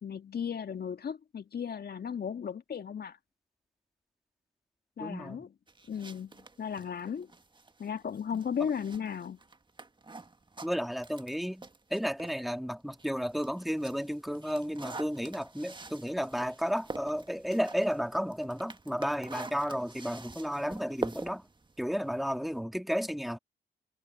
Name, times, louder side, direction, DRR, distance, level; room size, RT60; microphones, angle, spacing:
voice 1, 0.0-3.2 5.0-5.5 5.9-7.3 7.8-9.4, left 7 dB, 50° left, 1.9 m, -35 dB
voice 2, 5.0-5.4 8.3-8.4 10.6-11.6 11.9-21.5 21.8-23.4, equal, ahead, 2.6 m, -33 dB
sound 1, 5.7-12.5 12.9-22.6, right 3 dB, 20° right, 1.8 m, -46 dB
hypercardioid pair, 45°, 21 cm